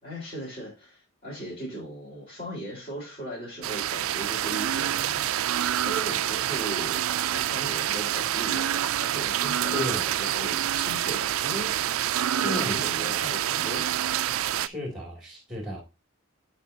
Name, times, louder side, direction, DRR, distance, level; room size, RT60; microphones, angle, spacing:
voice 1, 0.0-7.0 7.3-12.1 12.3-13.9, right 1 dB, 30° left, 4.3 m, -38 dB
sound 1, 3.6-14.7, right 11 dB, 90° right, 0.4 m, -27 dB
voice 2, 9.7-10.0 12.4-12.8 14.6-15.8, left 1 dB, ahead, 2.6 m, -33 dB
13.5 x 4.6 x 2.8 m
head